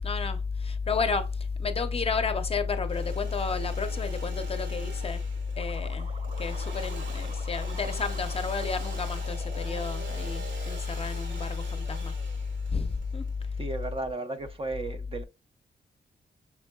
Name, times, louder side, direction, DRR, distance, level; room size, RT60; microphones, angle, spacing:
voice 1, 0.0-1.3 1.6-5.2 5.6-6.1 6.4-12.1 12.7-13.2, left 5 dB, 30° left, 0.6 m, -30 dB
Engine / Sawing, 2.7-14.4, right 3 dB, 85° right, 1.4 m, -46 dB
sound 1, 5.6-10.8, right 4 dB, 50° right, 0.9 m, -47 dB
voice 2, 13.6-15.2, right 2 dB, 30° right, 0.4 m, -34 dB
5.9 x 3.6 x 2.2 m
wide cardioid pair, 150°, 19 cm